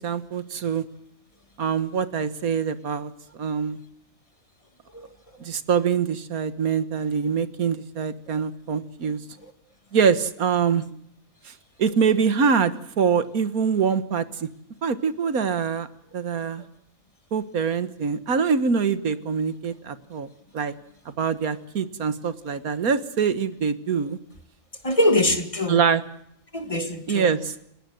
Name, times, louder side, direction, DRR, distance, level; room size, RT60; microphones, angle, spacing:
voice 1, 0.0-0.8 1.6-3.8 5.4-9.2 9.9-10.8 11.5-11.6 11.8-14.5 14.8-15.9 16.1-16.7 17.3-20.3 20.5-20.7 21.0-24.2 25.7-26.0 27.1-27.5, right 6 dB, 85° right, 13 dB, 1.8 m, -24 dB
voice 2, 24.8-25.8 26.5-27.3, left 1 dB, 25° left, 8 dB, 2.0 m, -23 dB
29.0 x 18.0 x 7.8 m, 0.73 s
omnidirectional pair, 1.5 m